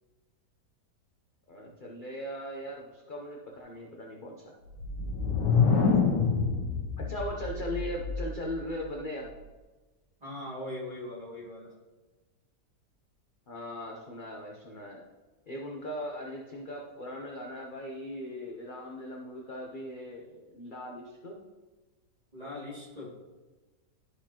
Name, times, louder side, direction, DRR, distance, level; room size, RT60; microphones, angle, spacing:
voice 1, 1.5-4.5 7.0-9.3 13.5-15.0 15.5-20.3 20.5-21.4, left 1 dB, 45° left, -1 dB, 0.7 m, -39 dB
sound 1, 4.7-8.5, left 5 dB, 85° left, 1.5 m, -27 dB
voice 2, 10.2-11.7 22.3-23.1, left 1 dB, 20° right, -6 dB, 2.3 m, -40 dB
11.5 x 4.9 x 2.9 m, 1.2 s
omnidirectional pair, 1.8 m